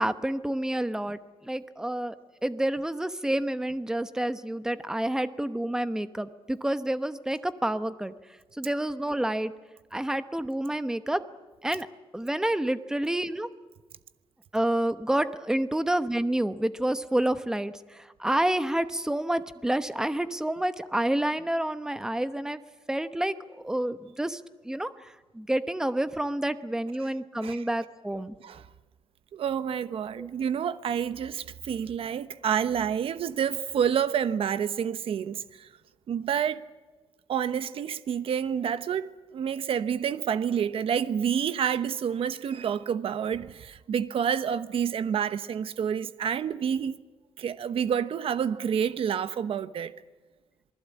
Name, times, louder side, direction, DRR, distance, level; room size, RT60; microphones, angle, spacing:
voice 1, 0.0-2.2 2.4-8.1 8.5-9.5 9.9-11.2 11.6-11.9 12.1-13.5 14.5-22.6 22.9-23.4 23.6-28.3 30.2-30.3, right 1 dB, 5° right, 1.0 m, -29 dB
voice 2, 29.3-35.7 36.1-36.6 37.3-47.0 47.4-49.9, right 8 dB, 65° right, 1.0 m, -28 dB
27.5 x 20.0 x 8.5 m
wide cardioid pair, 150°, 10 cm